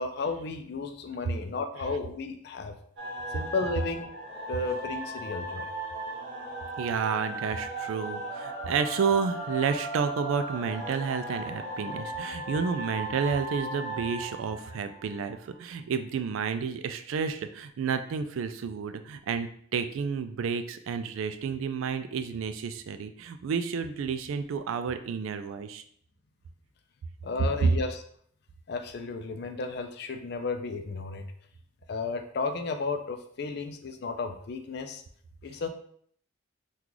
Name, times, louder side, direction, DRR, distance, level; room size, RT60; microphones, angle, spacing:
voice 1, 0.0-2.7 3.3-4.1 4.5-5.7 27.2-28.0 28.7-31.3 31.9-35.0 35.4-35.7, left 3 dB, 55° left, 7 dB, 0.4 m, -33 dB
sound 1, 3.0-15.5, right 1 dB, 65° right, 0.9 m, -37 dB
voice 2, 6.8-25.8 27.6-27.7, right 6 dB, 85° right, 9 dB, 0.3 m, -30 dB
3.0 x 2.3 x 3.7 m, 0.63 s
head